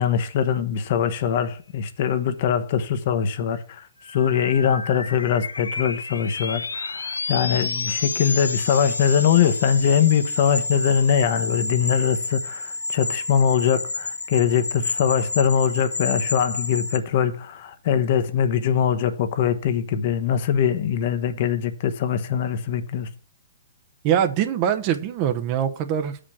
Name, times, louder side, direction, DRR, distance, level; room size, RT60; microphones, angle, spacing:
voice 1, 0.0-23.1, left 8 dB, 55° left, 1.0 m, -22 dB
sound 1, 4.0-17.0, left 3 dB, 90° left, 0.6 m, -30 dB
voice 2, 24.0-26.2, right 9 dB, 40° right, 0.8 m, -23 dB
7.2 x 5.1 x 7.2 m
hypercardioid pair, 120°, 0 cm